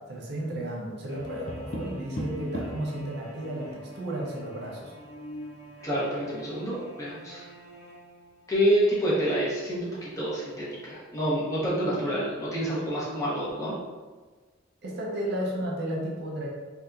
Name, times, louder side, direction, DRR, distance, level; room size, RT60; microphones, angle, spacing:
voice 1, 0.1-4.9 14.8-16.5, right 1 dB, 55° right, -3 dB, 0.6 m, -33 dB
sound 1, 1.1-8.8, left 1 dB, 75° left, 1.1 m, -47 dB
Tap, 1.2-2.9 4.9-5.6, left 1 dB, 35° left, 0.4 m, -37 dB
voice 2, 5.8-7.5 8.5-13.7, equal, 15° left, -7 dB, 0.8 m, -28 dB
3.3 x 2.8 x 2.4 m, 1.4 s
head